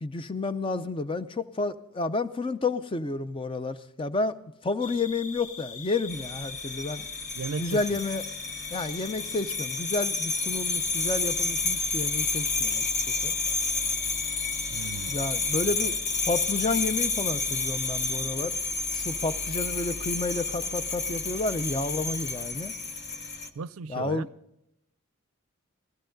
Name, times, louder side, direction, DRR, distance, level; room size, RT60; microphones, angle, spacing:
voice 1, 0.0-4.3 4.6-7.0 7.6-8.2 8.7-13.3 15.1-15.9 16.2-18.6 18.9-22.8 23.9-24.3, left 3 dB, 25° left, 0.5 m, -30 dB
sound 1, 4.8-18.3, left 4 dB, 85° left, 1.2 m, -42 dB
sound 2, 6.1-23.5, left 3 dB, 50° left, 0.9 m, -30 dB
voice 2, 7.3-8.0 14.7-15.2 15.6-15.9 23.6-24.3, right 5 dB, 80° right, 0.4 m, -36 dB
16.0 x 15.5 x 3.9 m
head